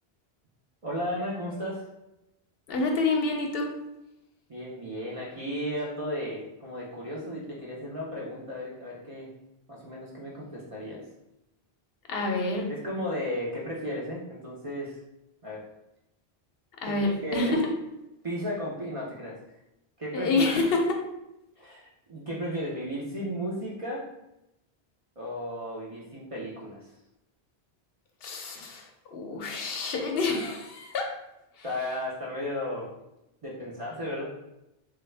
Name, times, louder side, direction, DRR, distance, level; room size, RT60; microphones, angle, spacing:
voice 1, 0.8-1.8 4.5-9.3 9.7-11.0 12.7-15.0 15.4-15.6 16.8-17.6 18.2-19.4 20.0-20.4 21.6-24.0 25.2-26.9 31.6-32.9 33.4-34.2, equal, 40° right, -5 dB, 0.5 m, -34 dB
voice 2, 2.7-3.7 12.1-12.7 16.8-17.7 20.1-21.0 28.2-31.1 31.6-31.7, left 3 dB, 70° left, 2 dB, 0.7 m, -28 dB
3.3 x 2.1 x 3.2 m, 0.89 s
omnidirectional pair, 1.1 m